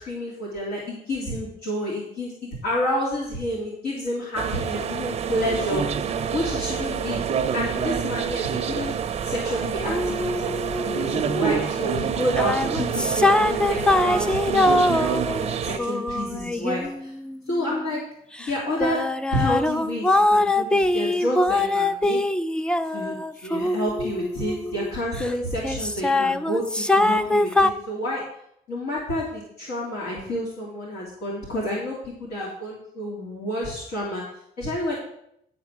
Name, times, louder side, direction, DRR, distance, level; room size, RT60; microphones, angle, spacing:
voice 1, 0.0-7.2 7.5-9.0 9.2-10.5 10.8-15.1 15.5-17.1 17.5-18.0 18.5-19.0 19.3-22.2 22.9-23.1 23.4-28.3 28.7-34.2 34.6-34.9, equal, 75° left, -4 dB, 2.6 m, -29 dB
sound 1, 4.4-15.8, right 7 dB, 40° right, 0.6 m, -27 dB
sound 2, 9.9-11.5 12.2-17.8 18.4-25.3 25.6-27.7, left 2 dB, 5° left, 0.3 m, -23 dB
10.0 x 4.2 x 5.9 m, 0.73 s
cardioid pair, 110°, 17 cm